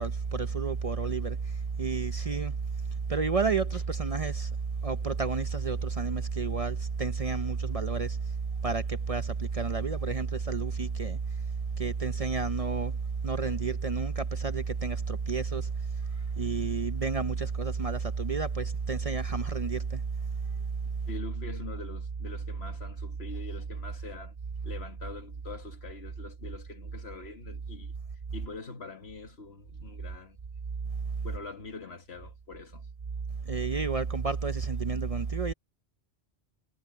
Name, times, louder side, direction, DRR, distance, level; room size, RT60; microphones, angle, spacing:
voice 1, 0.0-1.4 1.8-2.5 3.1-4.5 4.8-8.2 8.6-11.2 11.8-12.9 13.2-15.7 16.4-20.0 33.5-35.5, right 5 dB, 40° right, 0.6 m, -30 dB
voice 2, 21.1-24.4 24.6-27.9 28.3-30.4 31.2-32.9, left 3 dB, 70° left, 2.0 m, -44 dB
omnidirectional pair, 1.1 m